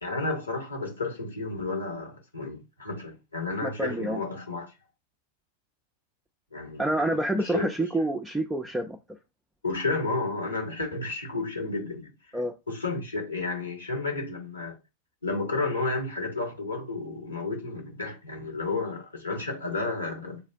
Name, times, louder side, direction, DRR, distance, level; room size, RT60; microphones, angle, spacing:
voice 1, 0.0-4.7 6.5-7.7 9.6-12.1 12.7-14.8 15.2-20.4, left 3 dB, 75° left, 1.0 m, -32 dB
voice 2, 3.6-4.2 6.8-9.0 12.3-12.5, right 1 dB, 5° right, 0.4 m, -27 dB
6.7 x 2.4 x 2.2 m
figure-of-eight pair, 90°, 0 cm